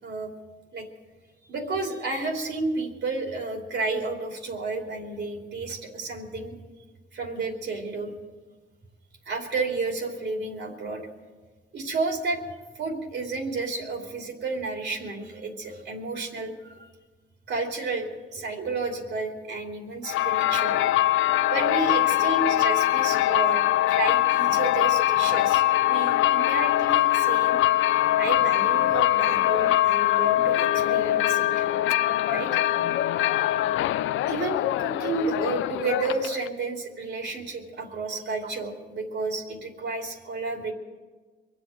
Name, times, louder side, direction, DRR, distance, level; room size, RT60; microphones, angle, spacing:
voice 1, 0.0-0.3 0.7-0.9 1.5-6.5 7.1-8.1 9.3-11.0 11.7-12.4 12.7-16.9 17.5-20.8 21.5-27.6 28.2-31.6 32.3-32.6 34.3-40.7, right 3 dB, 60° right, 2 dB, 2.8 m, -31 dB
sound 1, 20.0-36.5, left 14 dB, 80° left, 0.4 m, -23 dB
23.0 x 8.0 x 7.5 m, 1.4 s
cardioid pair, 90°, 20 cm